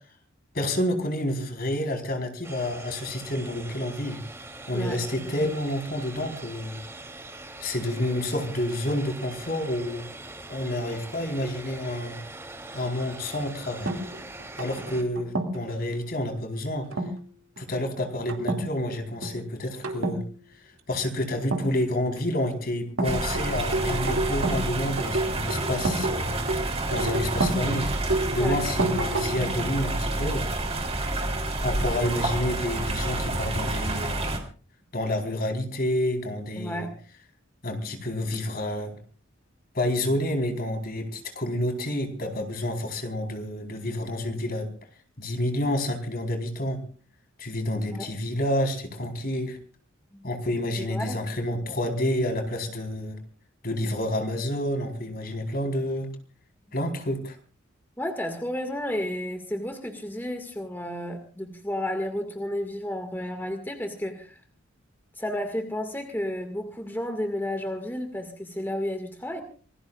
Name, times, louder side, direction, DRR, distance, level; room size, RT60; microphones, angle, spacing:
voice 1, 0.5-4.2 4.7-6.8 7.6-10.1 10.5-12.2 12.7-14.0 14.6-16.9 17.6-20.2 20.9-26.4 26.9-27.9 28.3-30.5 31.6-34.4 34.9-36.9 37.6-39.0 39.7-44.7 45.2-46.8 47.4-49.6 50.2-53.2 53.6-56.1 56.7-57.4, left 1 dB, 45° left, 4 dB, 4.3 m, -29 dB
sound 1, 2.4-15.0, right 2 dB, 15° right, 3.1 m, -42 dB
voice 2, 4.7-5.4 28.4-28.6 36.6-36.9 47.9-48.1 50.1-50.3 50.8-51.2 58.0-64.4 65.2-69.4, left 1 dB, 10° left, 5 dB, 2.0 m, -32 dB
sound 2, 13.9-15.7 16.9-17.2 17.6-17.8 18.3-18.7 19.0-19.4 19.8-20.2 21.4-22.2 23.0-24.7 25.0-27.6 28.1-29.6, right 2 dB, 85° right, 2.5 m, -29 dB
Alanis - Plaza de la Salud, 23.0-34.4, right 2 dB, 30° right, 3.5 m, -29 dB
27.0 x 20.0 x 2.5 m, 0.41 s
head